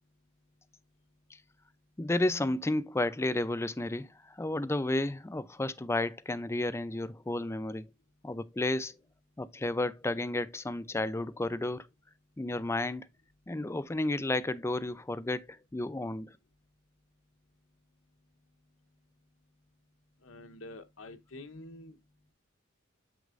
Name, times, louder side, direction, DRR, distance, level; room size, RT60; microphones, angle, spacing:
voice 1, 2.0-7.9 8.2-9.0 9.4-11.9 12.4-13.1 13.5-16.3, left 2 dB, 15° left, 0.4 m, -32 dB
voice 2, 20.2-22.0, left 2 dB, 80° left, 1.1 m, -47 dB
8.4 x 6.3 x 2.5 m
head